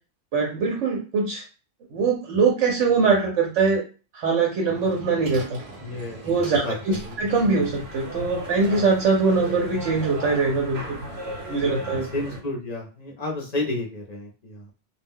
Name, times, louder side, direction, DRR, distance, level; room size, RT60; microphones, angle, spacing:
voice 1, 0.3-1.4 1.9-3.8 4.1-5.6 6.2-11.0 11.5-12.0, right 4 dB, 90° right, -1 dB, 1.0 m, -22 dB
sound 1, 4.7-10.4, right 2 dB, 40° right, 0.6 m, -42 dB
voice 2, 5.8-6.3 6.6-7.1 12.1-14.7, left 2 dB, 45° left, -1 dB, 0.6 m, -31 dB
sound 2, 7.3-12.4, right 1 dB, 65° right, 0.9 m, -34 dB
2.3 x 2.1 x 3.5 m, 0.35 s
omnidirectional pair, 1.2 m